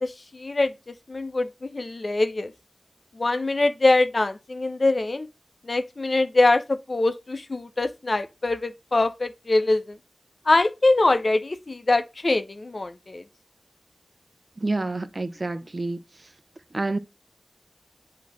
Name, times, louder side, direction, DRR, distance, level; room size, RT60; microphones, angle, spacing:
voice 1, 0.0-2.5 3.2-5.3 5.6-10.0 10.5-13.2, left 2 dB, 55° left, 0.7 m, -23 dB
voice 2, 14.6-16.0 16.7-17.0, right 2 dB, 50° right, 0.8 m, -28 dB
8.3 x 2.9 x 6.2 m
cardioid pair, 40°, 0 cm